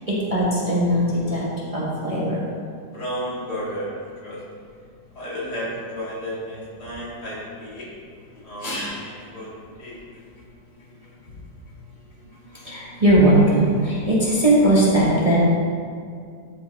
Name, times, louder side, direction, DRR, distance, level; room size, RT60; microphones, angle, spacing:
voice 1, 0.1-1.4 1.7-2.4 12.6-15.4, right 1 dB, 20° right, -8 dB, 1.4 m, -19 dB
voice 2, 2.9-4.4 5.1-7.9 8.3-9.5 9.8-10.0 13.9-14.0, equal, 65° left, -7 dB, 2.6 m, -32 dB
13.0 x 5.4 x 3.5 m, 2.2 s
omnidirectional pair, 1.9 m